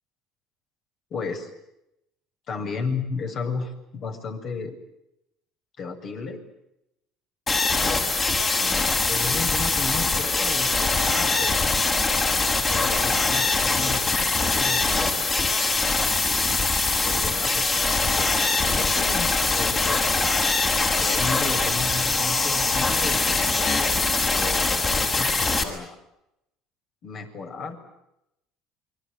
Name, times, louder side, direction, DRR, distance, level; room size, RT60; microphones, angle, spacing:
voice 1, 1.1-1.5 2.5-4.8 5.8-6.4 7.8-8.2 8.6-11.6 12.7-15.6 16.0-16.7 17.0-18.3 18.6-20.1 21.0-23.7 24.3-26.0 27.0-28.0, left 4 dB, 50° left, 5 dB, 7.4 m, -34 dB
sound 1, 7.5-25.6, left 3 dB, 30° left, 6.5 m, -23 dB
29.0 x 23.5 x 8.1 m, 0.84 s
supercardioid pair, 95°, 0 cm